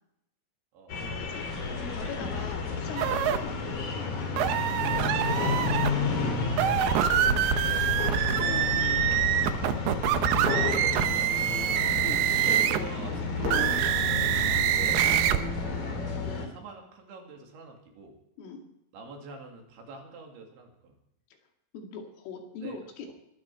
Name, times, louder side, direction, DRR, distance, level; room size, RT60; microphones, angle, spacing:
sound 1, 0.9-16.5, left 4 dB, 45° left, 3.4 m, -31 dB
voice 1, 1.2-1.5 1.8-4.4 8.3-8.9 12.0-12.2 14.2-14.5 18.4-18.7 21.7-23.1, left 5 dB, 75° left, 2 dB, 4.8 m, -41 dB
sound 2, 3.0-3.4 4.4-5.9 6.5-12.9 13.4-15.4, right 11 dB, 85° right, 2.3 m, -25 dB
voice 2, 5.5-8.1 10.4-11.7 12.7-13.9 14.7-18.1 18.9-21.0 22.6-22.8, right 4 dB, 65° right, 2 dB, 4.5 m, -46 dB
22.5 x 12.5 x 4.6 m, 0.80 s
omnidirectional pair, 5.8 m